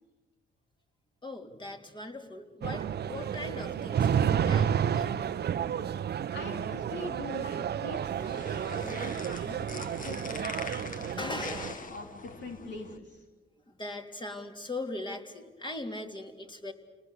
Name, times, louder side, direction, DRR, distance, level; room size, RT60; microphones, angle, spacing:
voice 1, 1.2-5.2 11.2-11.9 13.7-16.7, left 2 dB, 25° left, 3 dB, 3.4 m, -40 dB
sound 1, 2.6-11.7, right 8 dB, 55° right, 0.9 m, -31 dB
voice 2, 6.3-8.2 8.6-13.2, left 3 dB, 60° left, 2 dB, 3.4 m, -43 dB
sound 2, 8.0-13.0, left 4 dB, 45° left, 1.8 m, -43 dB
29.0 x 19.5 x 8.4 m, 1.2 s
cardioid pair, 90°, 20 cm